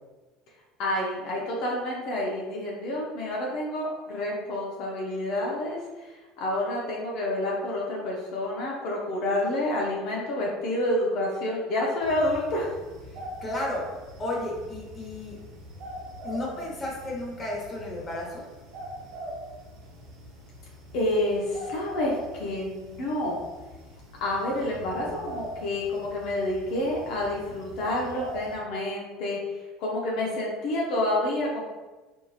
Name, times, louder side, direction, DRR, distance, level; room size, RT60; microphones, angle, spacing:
voice 1, 0.8-12.7 20.9-23.4 24.2-29.4 29.8-31.6, left 1 dB, 65° left, -3 dB, 0.6 m, -29 dB
sound 1, 12.0-28.6, right 1 dB, 65° right, 0.8 m, -42 dB
voice 2, 13.4-13.9 14.2-15.4 16.2-18.4, left 1 dB, 25° left, -3 dB, 0.9 m, -33 dB
2.8 x 2.7 x 2.3 m, 1.2 s
hypercardioid pair, 80°, 0 cm